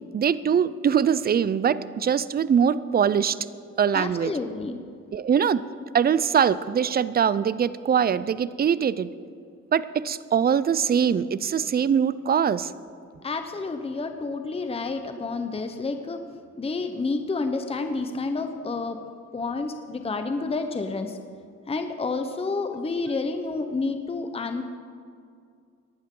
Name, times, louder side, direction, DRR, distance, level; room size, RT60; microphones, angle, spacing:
voice 1, 0.1-3.4 3.8-4.3 5.1-5.6 5.9-9.1 9.7-12.7, right 7 dB, 30° right, 17 dB, 0.5 m, -22 dB
voice 2, 3.9-4.8 13.2-16.2 16.6-21.2 21.7-24.6, left 3 dB, 20° left, 7 dB, 0.8 m, -29 dB
19.0 x 11.5 x 3.8 m, 2.3 s
cardioid pair, 90°, 30 cm